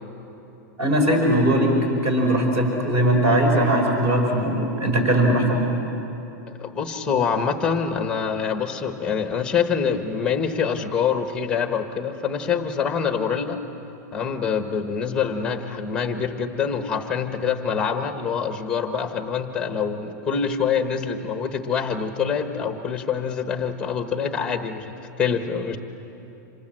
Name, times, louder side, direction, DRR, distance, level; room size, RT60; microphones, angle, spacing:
voice 1, 0.8-1.7 2.0-5.7, right 1 dB, 25° right, 2 dB, 5.0 m, -20 dB
voice 2, 6.6-13.6 14.1-25.8, left 6 dB, 10° left, 7 dB, 1.3 m, -25 dB
27.0 x 26.5 x 7.7 m, 3.0 s
supercardioid pair, 170°, 10 cm